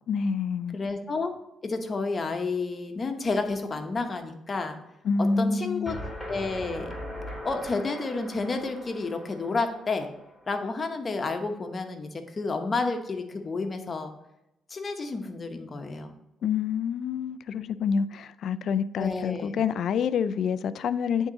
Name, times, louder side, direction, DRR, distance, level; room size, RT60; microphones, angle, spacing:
voice 1, 0.1-0.8 5.0-6.0 16.4-21.3, left 6 dB, 65° left, 14 dB, 0.3 m, -27 dB
voice 2, 0.7-1.3 1.6-4.8 5.2-6.0 6.3-6.9 7.4-10.1 10.5-14.1 14.7-16.1 19.0-19.6, left 3 dB, 35° left, 5 dB, 0.9 m, -30 dB
sound 1, 5.9-10.8, left 1 dB, 5° right, 2.4 m, -40 dB
9.0 x 3.6 x 3.9 m, 0.89 s
cardioid pair, 90°, 0 cm